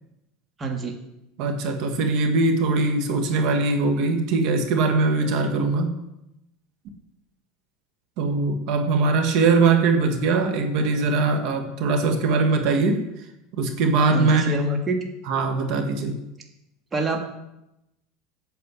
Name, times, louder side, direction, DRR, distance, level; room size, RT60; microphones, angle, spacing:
voice 1, 0.6-1.0 14.1-15.1 16.9-17.2, right 2 dB, 20° right, 2 dB, 1.6 m, -26 dB
voice 2, 1.4-5.9 8.2-13.0 13.6-14.6 15.3-16.2, right 3 dB, 60° right, 5 dB, 1.7 m, -21 dB
8.5 x 6.6 x 8.3 m, 0.88 s
supercardioid pair, 130°, 0 cm